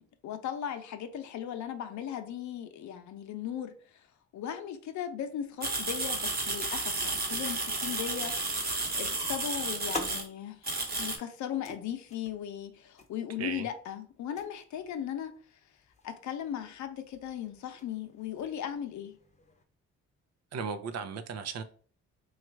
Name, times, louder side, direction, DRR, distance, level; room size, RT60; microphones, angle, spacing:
voice 1, 0.0-4.0 4.3-8.3 8.9-10.6 11.0-15.3 16.0-19.1, left 9 dB, 70° left, 0.7 m, -37 dB
sound 1, 5.6-10.2 10.6-11.2, right 2 dB, 30° right, 1.1 m, -32 dB
sound 2, 9.8-19.6, left 3 dB, 25° left, 0.8 m, -48 dB
voice 2, 20.5-21.6, right 6 dB, 60° right, 0.6 m, -36 dB
3.2 x 2.4 x 4.4 m
cardioid pair, 90°, 30 cm